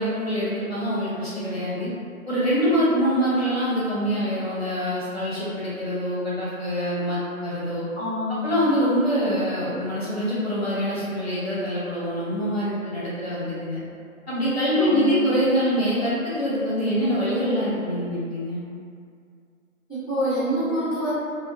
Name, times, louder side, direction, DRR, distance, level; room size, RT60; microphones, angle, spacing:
voice 1, 0.0-1.9 2.3-7.8 8.4-13.8 14.3-18.6, equal, 45° left, -9 dB, 0.7 m, -24 dB
voice 2, 8.0-8.5 14.8-15.3 19.9-21.1, equal, 15° left, -12 dB, 0.7 m, -26 dB
2.5 x 2.1 x 2.4 m, 2.3 s
figure-of-eight pair, 160°, 42 cm